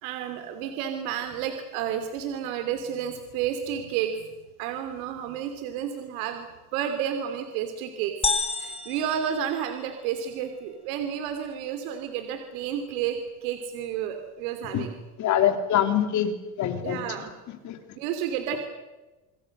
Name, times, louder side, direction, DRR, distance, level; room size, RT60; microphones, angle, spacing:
voice 1, 0.0-4.3 4.6-8.1 8.5-14.9 16.8-17.3 17.9-18.6, right 9 dB, 80° right, 6 dB, 3.1 m, -31 dB
sound 1, 8.2-10.2, left 4 dB, 15° left, 1.7 m, -30 dB
voice 2, 15.2-17.0 17.6-17.8, left 10 dB, 45° left, 7 dB, 3.1 m, -24 dB
27.5 x 22.5 x 6.7 m, 1.1 s
cardioid pair, 140°, 41 cm